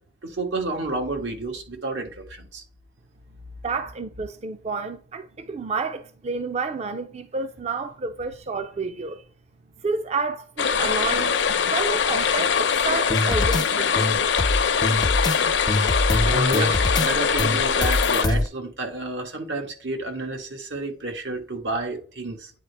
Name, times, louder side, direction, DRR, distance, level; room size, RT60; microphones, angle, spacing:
voice 1, 0.2-2.6 16.2-22.5, right 2 dB, 80° right, 1.6 m, -30 dB
voice 2, 3.6-9.2 9.8-11.3 11.7-14.0, right 4 dB, 35° right, 0.4 m, -30 dB
sound 1, 10.6-18.3, left 6 dB, 80° left, 0.6 m, -22 dB
sound 2, 13.1-13.6 14.0-15.4 15.7-17.1 17.4-18.5, left 2 dB, 25° left, 0.4 m, -23 dB
9.2 x 4.1 x 3.4 m
head